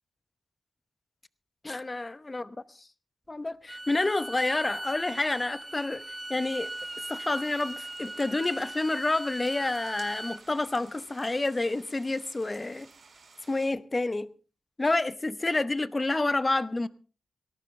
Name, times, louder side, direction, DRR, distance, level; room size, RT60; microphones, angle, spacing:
voice 1, 1.6-2.6 3.3-6.0 6.3-6.7 7.1-12.9 13.5-14.3 14.8-16.9, left 2 dB, 25° left, 0.9 m, -29 dB
Bowed string instrument, 3.7-10.4, right 1 dB, 15° right, 1.4 m, -39 dB
sound 1, 6.4-13.7, right 4 dB, 60° right, 5.1 m, -55 dB
18.5 x 17.5 x 3.3 m
wide cardioid pair, 110°, 0 cm